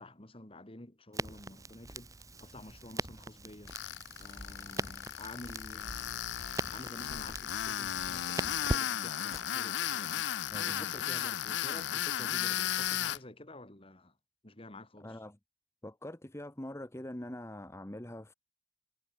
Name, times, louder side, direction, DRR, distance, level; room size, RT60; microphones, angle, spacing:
voice 1, 0.0-2.1 2.4-3.7 4.2-6.3 6.7-14.1 14.4-15.2, left 1 dB, 30° left, 2.7 m, -50 dB
Crackle, 1.1-9.4, right 2 dB, 20° right, 2.1 m, -41 dB
Tools, 3.7-13.2, left 11 dB, 80° left, 0.5 m, -35 dB
voice 2, 10.5-10.9 15.0-15.4 15.8-18.3, left 1 dB, 15° left, 1.3 m, -43 dB
head